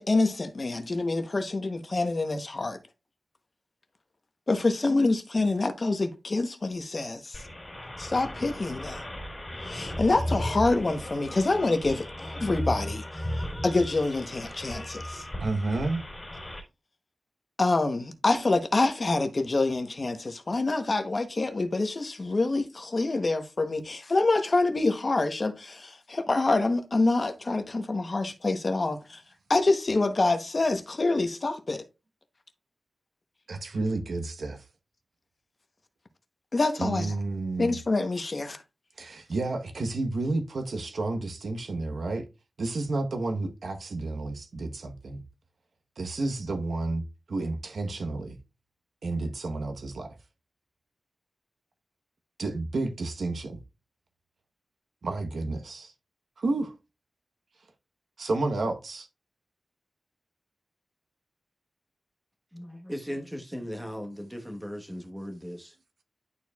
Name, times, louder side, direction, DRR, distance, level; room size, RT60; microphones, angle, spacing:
voice 1, 0.0-2.8 4.5-7.4 8.0-9.0 9.7-13.0 13.6-15.2 17.6-29.2 29.5-31.8 36.5-37.1 37.6-38.6, left 2 dB, 40° left, 0.9 m, -26 dB
sound 1, 7.3-16.6, equal, 15° left, 3.1 m, -36 dB
voice 2, 15.4-16.0 33.5-34.6 36.8-37.8 39.0-42.3 42.6-45.2 46.0-48.4 49.0-50.2 52.4-53.6 55.0-55.9 56.4-56.7 58.2-59.1, right 2 dB, 75° right, 1.1 m, -31 dB
voice 3, 62.5-65.8, equal, 10° right, 1.2 m, -37 dB
11.0 x 4.5 x 2.3 m
wide cardioid pair, 130°, 0 cm